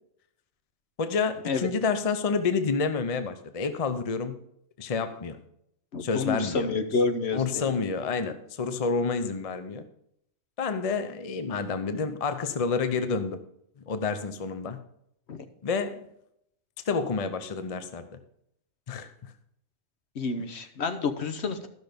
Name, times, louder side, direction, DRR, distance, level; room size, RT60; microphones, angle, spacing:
voice 1, 1.0-4.4 4.8-5.4 6.0-6.7 7.3-9.8 10.6-13.4 13.9-14.8 15.6-16.1 16.8-18.1 18.9-19.3, left 5 dB, 35° left, 10 dB, 0.7 m, -29 dB
voice 2, 5.9-7.7 15.3-15.4 20.1-21.7, left 4 dB, 70° left, 8 dB, 1.2 m, -29 dB
12.5 x 6.2 x 5.1 m, 0.74 s
omnidirectional pair, 1.2 m